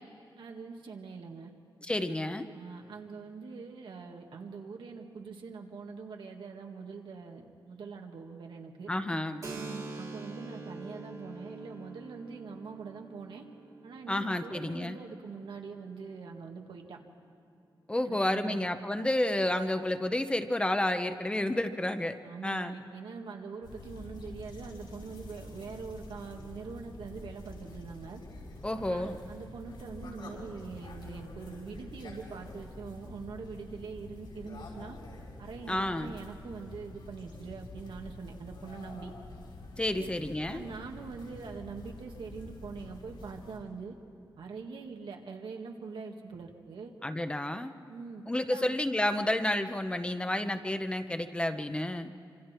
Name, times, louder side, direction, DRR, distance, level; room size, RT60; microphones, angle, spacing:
voice 1, 0.4-1.5 2.5-8.9 9.5-13.4 13.8-17.0 18.1-18.6 22.2-28.2 28.9-35.0 35.4-39.1 39.9-40.1 40.5-44.0 44.4-46.9 47.9-48.8, right 5 dB, 85° right, 2 dB, 2.0 m, -43 dB
voice 2, 1.8-2.5 8.9-9.4 14.1-15.0 17.9-22.1 22.4-22.7 28.6-29.2 35.7-36.1 39.8-40.7 47.0-47.7 48.3-52.1, left 1 dB, 15° left, 8 dB, 0.8 m, -30 dB
Keyboard (musical), 9.4-16.8, right 3 dB, 40° right, 1.9 m, -46 dB
sound 1, 23.6-43.6, left 2 dB, 75° left, 5.6 m, -47 dB
27.0 x 25.5 x 4.5 m, 2.7 s
wide cardioid pair, 150°, 8 cm